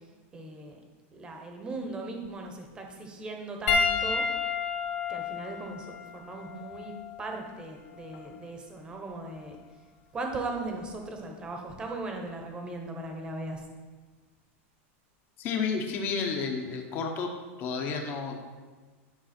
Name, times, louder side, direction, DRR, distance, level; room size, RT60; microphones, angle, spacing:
voice 1, 0.3-0.8 1.1-4.2 5.1-6.9 7.2-9.6 10.1-13.6, right 2 dB, 10° right, 3 dB, 1.0 m, -38 dB
Piano, 3.7-8.3 9.3-9.5 11.4-11.5, left 5 dB, 70° left, 1.6 m, -31 dB
voice 2, 15.4-17.3 17.6-18.4, left 5 dB, 25° left, 3 dB, 0.9 m, -31 dB
10.5 x 5.5 x 4.3 m, 1.4 s
supercardioid pair, 175°, 7 cm